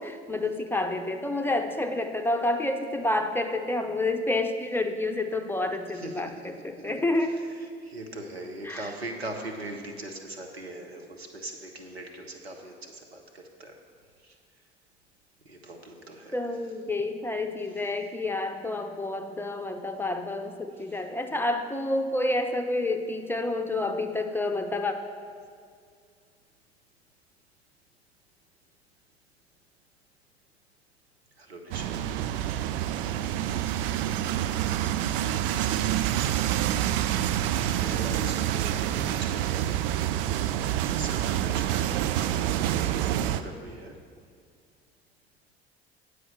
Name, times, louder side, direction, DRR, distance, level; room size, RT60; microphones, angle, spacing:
voice 1, 0.0-7.4 8.6-8.9 16.3-24.9, left 2 dB, 5° left, 5 dB, 0.7 m, -29 dB
voice 2, 5.9-6.5 6.8-7.0 7.6-13.7 14.2-14.4 15.4-16.4 20.9-21.0 31.4-32.0 37.6-39.8 40.9-42.0 42.6-43.9, right 2 dB, 90° right, 3 dB, 0.8 m, -41 dB
sound 1, 31.7-43.4, right 11 dB, 65° right, 0.4 m, -27 dB
9.1 x 4.8 x 6.6 m, 2.1 s
figure-of-eight pair, 55°, 30 cm